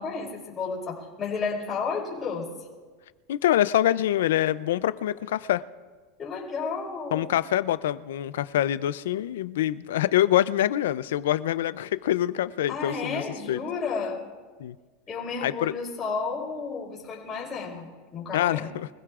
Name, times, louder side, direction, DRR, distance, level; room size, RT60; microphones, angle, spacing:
voice 1, 0.0-2.5 6.2-7.3 12.7-14.2 15.1-18.7, left 5 dB, 20° left, -4 dB, 4.3 m, -32 dB
voice 2, 3.3-5.6 7.1-13.6 14.6-14.8 15.4-15.7 18.3-18.9, left 12 dB, 85° left, 16 dB, 0.4 m, -25 dB
24.0 x 16.0 x 2.5 m, 1.4 s
supercardioid pair, 145°, 0 cm